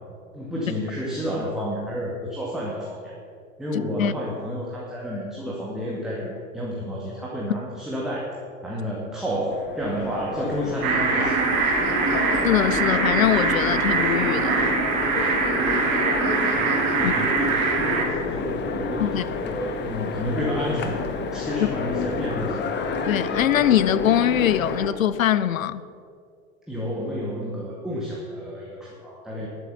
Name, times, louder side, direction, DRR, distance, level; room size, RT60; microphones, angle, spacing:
voice 1, 0.3-3.1 3.6-8.3 8.6-11.4 16.9-22.6 26.7-29.5, equal, ahead, 2.0 m, -30 dB
Train, 9.5-24.9, left 4 dB, 25° left, 1.2 m, -30 dB
sound 1, 10.8-18.0, right 4 dB, 45° right, 2.8 m, -23 dB
voice 2, 12.4-14.7 17.0-17.1 19.0-19.2 23.1-25.8, left 11 dB, 75° left, 0.6 m, -22 dB
11.5 x 8.1 x 6.8 m
figure-of-eight pair, 90°, 40 cm